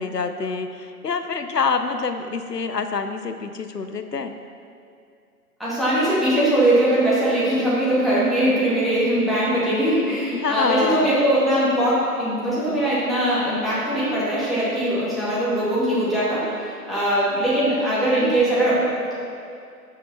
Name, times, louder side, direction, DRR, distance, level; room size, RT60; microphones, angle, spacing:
voice 1, 0.0-4.4 10.3-11.1, left 5 dB, 85° left, 8 dB, 0.8 m, -26 dB
voice 2, 5.6-18.7, right 1 dB, ahead, -11 dB, 2.0 m, -21 dB
12.0 x 6.7 x 4.0 m, 2.3 s
figure-of-eight pair, 130°, 48 cm